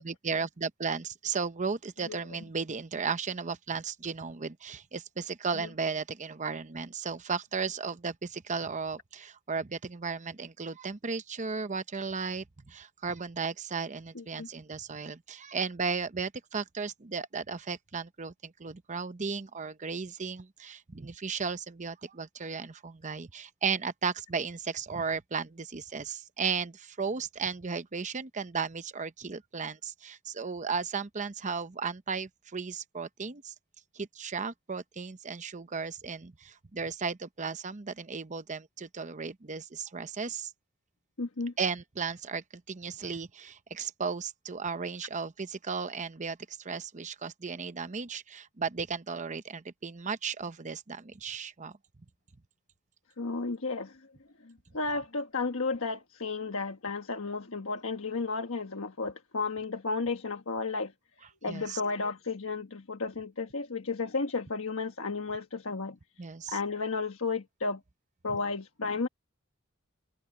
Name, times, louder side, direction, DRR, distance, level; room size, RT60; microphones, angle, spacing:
voice 1, 0.0-33.5 33.9-40.5 41.6-51.8 61.5-61.8 66.2-66.6, right 5 dB, 35° right, 0.8 m, -35 dB
voice 2, 14.1-14.5 41.2-41.5 53.2-54.1 54.4-60.9 61.4-66.0 66.5-67.8 68.2-69.1, left 4 dB, 75° left, 1.3 m, -33 dB
head